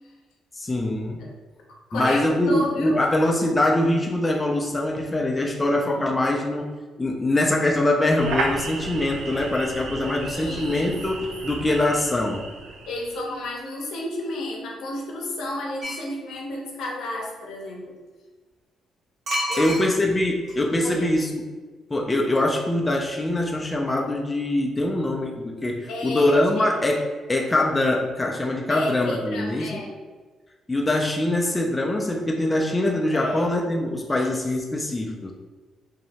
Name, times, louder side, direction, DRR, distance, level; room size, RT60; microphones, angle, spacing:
voice 1, 0.6-1.2 1.9-6.7 7.0-12.5 19.6-21.4 21.9-29.8 30.7-35.3, left 1 dB, 20° left, 1 dB, 0.3 m, -23 dB
voice 2, 1.9-3.0 10.3-11.4 12.9-18.0 19.5-19.7 20.8-21.1 25.9-26.7 28.7-29.9 33.1-33.5 34.1-34.4 34.7-34.9, left 1 dB, 80° left, -1 dB, 0.6 m, -32 dB
sound 1, 8.2-13.5, right 3 dB, 85° right, 0.3 m, -33 dB
sound 2, 15.8-16.1 19.3-20.2 20.5-20.6, equal, 45° right, 0.7 m, -28 dB
2.6 x 2.0 x 2.8 m, 1.3 s
cardioid pair, 90°, 0 cm